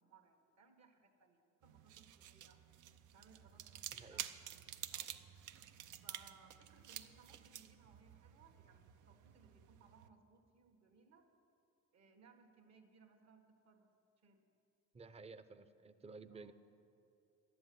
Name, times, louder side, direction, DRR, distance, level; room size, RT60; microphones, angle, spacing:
voice 1, 0.0-2.6 3.1-5.2 6.0-11.3 11.9-13.9 14.2-14.5 16.3-16.5, right 4 dB, 60° right, 5 dB, 1.7 m, -66 dB
sound 1, 1.6-10.1, right 11 dB, 80° right, 0.6 m, -51 dB
voice 2, 3.9-4.2 14.9-16.5, right 4 dB, 20° right, 11 dB, 0.6 m, -54 dB
11.5 x 7.8 x 9.5 m, 2.6 s
cardioid pair, 90°, 30 cm